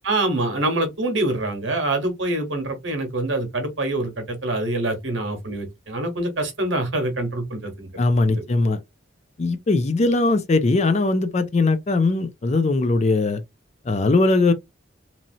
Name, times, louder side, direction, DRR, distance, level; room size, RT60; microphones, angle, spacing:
voice 1, 0.0-7.9 8.3-8.4, right 2 dB, 65° right, 1.1 m, -25 dB
voice 2, 8.0-8.8 9.4-13.4 13.9-14.5, left 3 dB, 35° left, 0.4 m, -20 dB
3.0 x 2.7 x 2.6 m
head